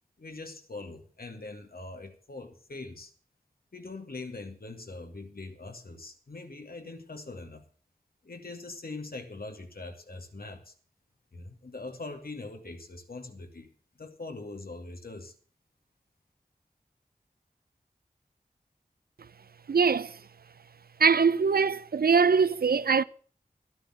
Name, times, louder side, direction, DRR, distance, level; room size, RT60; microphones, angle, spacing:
voice 1, 0.2-3.1 3.7-7.6 8.2-10.7 11.3-15.3, left 3 dB, 85° left, 2.4 m, -42 dB
voice 2, 19.7-20.2 21.0-23.0, right 5 dB, 90° right, 0.5 m, -22 dB
12.5 x 12.0 x 6.0 m
wide cardioid pair, 45°, 15 cm